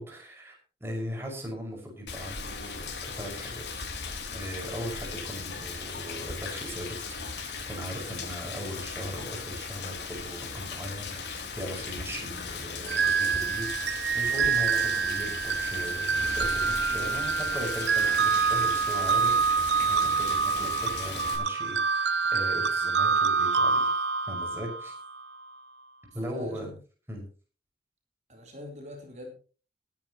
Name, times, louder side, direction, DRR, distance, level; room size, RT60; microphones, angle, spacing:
voice 1, 0.0-3.7 4.3-7.0 7.2-24.0 24.2-25.0 26.1-26.7 27.1-27.3, equal, 15° right, 0 dB, 5.8 m, -39 dB
Rain, 2.1-21.4, left 5 dB, 90° left, 4.4 m, -37 dB
sound 1, 12.9-25.2, right 5 dB, 85° right, 0.8 m, -26 dB
voice 2, 26.2-26.8 28.3-29.3, left 1 dB, 40° right, 1 dB, 4.0 m, -43 dB
20.5 x 11.0 x 3.1 m, 0.37 s
head